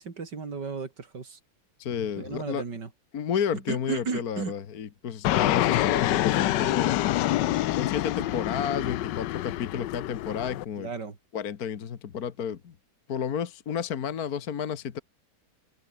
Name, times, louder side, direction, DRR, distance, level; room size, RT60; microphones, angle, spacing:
voice 1, 0.0-1.4 2.2-2.9 3.5-4.6 10.8-11.2, right 5 dB, 75° right, 3.4 m, -34 dB
voice 2, 1.8-2.6 3.1-7.0 7.7-10.9 11.3-12.7 13.1-15.0, left 8 dB, 60° left, 1.7 m, -31 dB
Fixed-wing aircraft airplane, 5.2-10.6, left 14 dB, 90° left, 1.3 m, -26 dB
open air
omnidirectional pair, 1.9 m